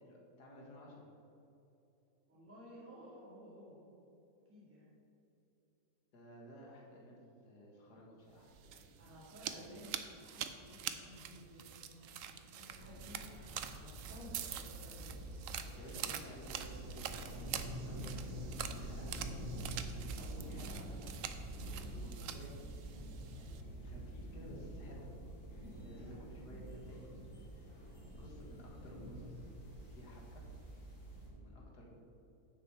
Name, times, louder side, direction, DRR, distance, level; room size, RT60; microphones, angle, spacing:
voice 1, 0.0-1.1 6.1-9.0 15.8-19.5 19.9-21.1 21.6-22.5 23.3-25.1 25.5-27.2 27.5-30.4 31.3-31.9, equal, 75° left, -2 dB, 2.1 m, -55 dB
voice 2, 2.3-3.9 4.5-4.9 9.0-13.2 13.7-16.1 18.2-18.4 19.8-20.2 22.1-22.4 25.9-26.2, equal, 10° right, -7 dB, 1.9 m, -56 dB
sound 1, 8.4-23.6, right 9 dB, 65° right, 0.8 m, -46 dB
sound 2, 12.7-31.3, right 1 dB, 35° left, 2.4 m, -47 dB
9.8 x 6.4 x 4.7 m, 2.9 s
omnidirectional pair, 1.7 m